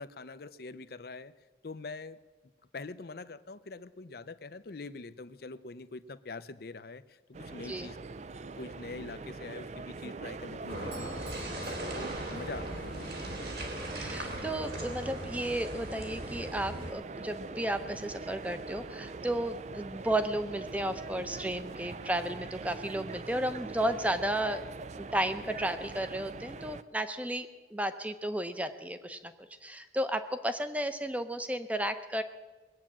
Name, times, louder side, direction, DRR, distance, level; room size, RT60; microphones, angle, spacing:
voice 1, 0.0-1.3 1.6-2.2 2.7-8.0 8.6-11.1 11.9-13.1, left 3 dB, 55° left, 14 dB, 0.6 m, -44 dB
sound 1, 7.3-26.8, right 3 dB, 40° right, 0.4 m, -43 dB
sound 2, 10.7-16.9, right 1 dB, 60° right, 3.0 m, -39 dB
Bell / Doorbell, 10.9-13.0, right 3 dB, 75° right, 2.5 m, -54 dB
voice 2, 13.7-24.6 25.0-29.3 29.6-32.2, right 1 dB, 10° right, 10 dB, 0.7 m, -33 dB
21.0 x 8.8 x 7.4 m, 1.3 s
head